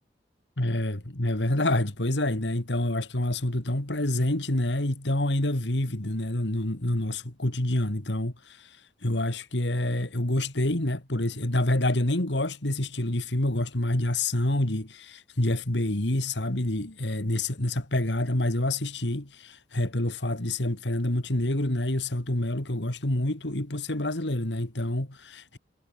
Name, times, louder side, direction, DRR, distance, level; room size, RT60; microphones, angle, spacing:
voice 1, 0.6-25.6, left 1 dB, 75° left, 2.6 m, -27 dB
head